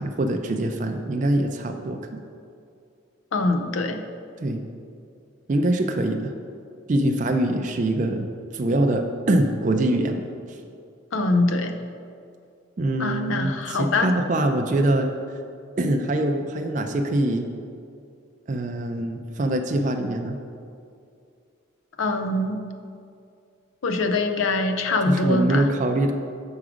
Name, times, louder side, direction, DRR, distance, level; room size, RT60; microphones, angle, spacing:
voice 1, 0.0-2.2 4.4-4.6 5.5-6.3 6.9-8.3 8.5-10.2 10.5-10.6 12.8-15.1 15.8-17.5 18.5-20.4 25.1-26.1, right 1 dB, 35° right, 4 dB, 0.4 m, -23 dB
voice 2, 3.3-4.0 11.1-11.7 13.0-14.1 22.0-22.6 23.8-25.7, left 2 dB, 70° left, 7 dB, 0.5 m, -23 dB
6.2 x 4.7 x 4.9 m, 2.4 s
head